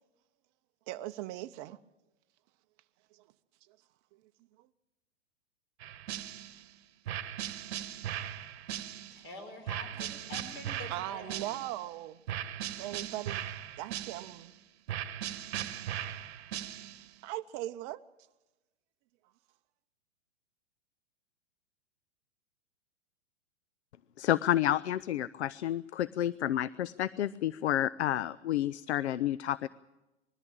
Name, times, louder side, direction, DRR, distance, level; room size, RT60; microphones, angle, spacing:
voice 1, 0.9-1.8 3.1-3.2 4.6-4.7 10.9-12.2 12.8-13.5 13.8-14.5 17.2-18.0, right 15 dB, 35° right, 0.7 m, -39 dB
sound 1, 5.8-6.7 7.1-9.3 9.7-11.9 12.3-14.5 14.9-17.1, right 11 dB, 60° right, 1.1 m, -39 dB
voice 2, 9.1-11.6, left 2 dB, 35° left, 5.1 m, -47 dB
voice 3, 24.2-29.7, left 12 dB, 70° left, 0.6 m, -30 dB
21.0 x 14.0 x 8.8 m
hypercardioid pair, 110°, 35 cm